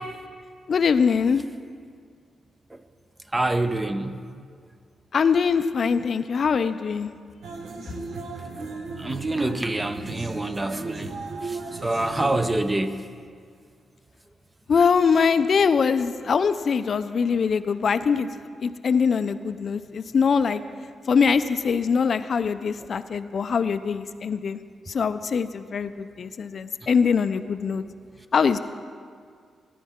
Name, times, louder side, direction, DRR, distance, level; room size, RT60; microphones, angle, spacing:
voice 1, 0.7-1.4 5.1-7.1 14.7-18.3 18.6-20.6 21.1-24.6 24.9-27.8 28.3-28.6, left 6 dB, 55° left, 12 dB, 0.4 m, -22 dB
voice 2, 3.3-4.2 9.0-13.0, right 2 dB, 15° right, 9 dB, 0.6 m, -26 dB
sound 1, 7.4-12.7, right 3 dB, 75° right, 1.2 m, -36 dB
17.5 x 10.0 x 3.6 m, 2.1 s
cardioid pair, 110°, 0 cm